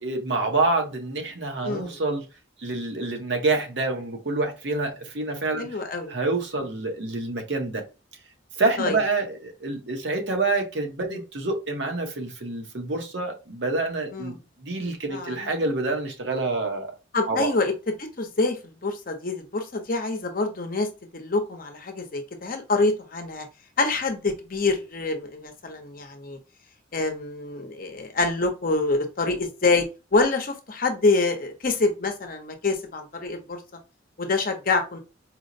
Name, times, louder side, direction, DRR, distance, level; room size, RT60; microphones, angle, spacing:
voice 1, 0.0-2.2 2.6-5.8 6.1-7.8 8.6-16.9 17.3-17.5, right 3 dB, 70° right, 0.9 m, -27 dB
voice 2, 1.6-2.0 5.6-6.1 8.8-9.0 11.1-11.2 14.1-14.4 15.1-15.5 17.1-20.9 21.1-23.5 23.8-26.4 26.9-29.9 30.1-33.6 34.2-35.0, left 3 dB, 50° left, 0.7 m, -26 dB
4.4 x 2.1 x 2.6 m
head